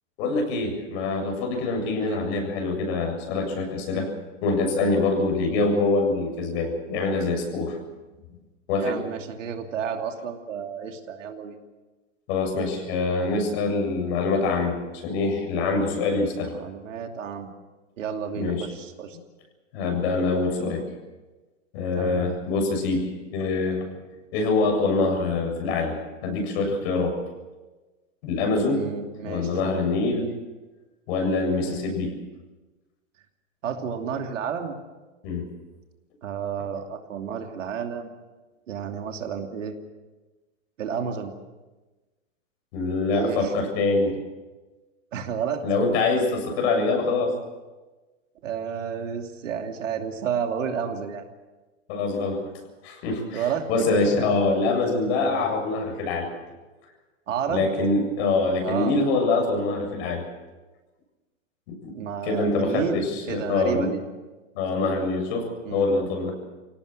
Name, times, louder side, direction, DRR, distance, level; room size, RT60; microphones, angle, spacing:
voice 1, 0.2-4.1 4.4-7.8 8.7-8.9 12.3-16.5 18.3-18.7 19.7-20.8 21.7-23.9 24.3-25.9 26.2-27.2 28.2-28.8 29.2-30.3 31.1-32.1 35.2-35.4 42.7-44.1 45.6-47.3 51.9-52.4 52.8-56.3 57.5-60.2 61.7-61.9 62.2-63.9 64.5-66.3, left 3 dB, 55° left, 3 dB, 7.5 m, -24 dB
voice 2, 8.8-11.6 16.5-17.5 18.0-19.2 22.0-22.3 28.7-29.9 31.6-31.9 33.6-34.7 36.2-38.1 38.7-39.7 40.8-41.3 43.1-43.7 45.1-45.6 48.4-51.3 53.3-53.7 54.0-54.3 55.2-55.5 57.3-57.7 58.6-58.9 61.9-64.0 65.6-65.9, right 7 dB, 75° right, 4 dB, 2.9 m, -31 dB
24.5 x 17.5 x 7.6 m, 1.2 s
hypercardioid pair, 120°, 38 cm